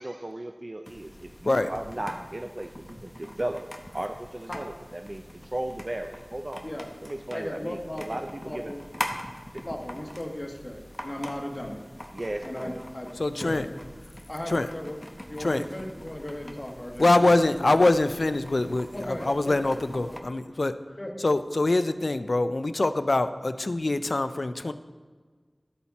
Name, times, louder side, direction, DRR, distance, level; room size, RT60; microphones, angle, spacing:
voice 1, 0.0-3.6 3.9-6.7 7.0-8.7 9.5-9.6 12.1-12.8, right 1 dB, 50° right, 5 dB, 0.4 m, -35 dB
sound 1, 0.9-20.2, equal, 20° left, 0.8 m, -43 dB
voice 2, 7.3-8.8 9.6-11.8 12.4-13.8 14.3-15.0 15.3-17.7 18.9-19.7 20.0-20.1 21.0-21.1, left 1 dB, 45° left, 0 dB, 1.3 m, -37 dB
voice 3, 13.2-13.7 14.5-14.7 15.4-15.6 17.0-20.7 21.2-24.7, left 2 dB, 80° left, 11 dB, 0.3 m, -24 dB
12.5 x 4.2 x 4.1 m, 1.5 s
wide cardioid pair, 50°, 0 cm